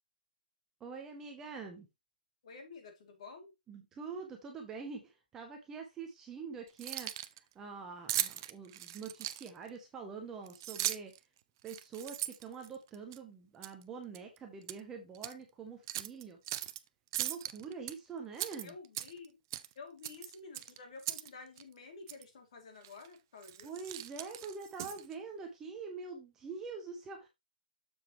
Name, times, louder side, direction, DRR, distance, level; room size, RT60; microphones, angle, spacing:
voice 1, 0.8-1.9 3.7-7.1 7.5-11.1 11.6-16.4 17.1-18.7 23.6-27.3, right 5 dB, 10° right, 0.8 m, -45 dB
voice 2, 2.4-3.5 18.6-19.4 19.7-23.9, left 4 dB, 45° left, 2.6 m, -51 dB
Keys jangling, 6.7-7.4 8.1-9.7 10.5-11.2 11.6-13.2 13.6-13.8 14.1-14.8 15.1-15.3 15.9-16.8 17.1-17.9 18.3-19.3 19.5-19.7 20.0-21.3 21.6-21.7 22.1-22.2 22.8-23.1 23.4-25.1, right 14 dB, 25° right, 0.4 m, -38 dB
7.1 x 6.7 x 3.0 m
hypercardioid pair, 170°, 5 cm